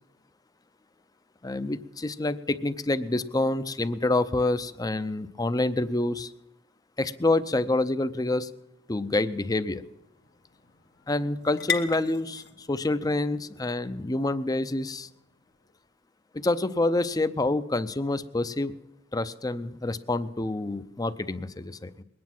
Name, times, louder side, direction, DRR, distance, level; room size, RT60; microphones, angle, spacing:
voice 1, 1.4-6.3 7.0-8.5 8.9-9.8 11.1-15.1 16.3-18.7 19.1-22.0, left 2 dB, 20° left, 13 dB, 0.5 m, -27 dB
sound 1, 8.1-15.9, left 6 dB, 55° left, 1.1 m, -40 dB
21.5 x 9.5 x 6.0 m, 0.95 s
head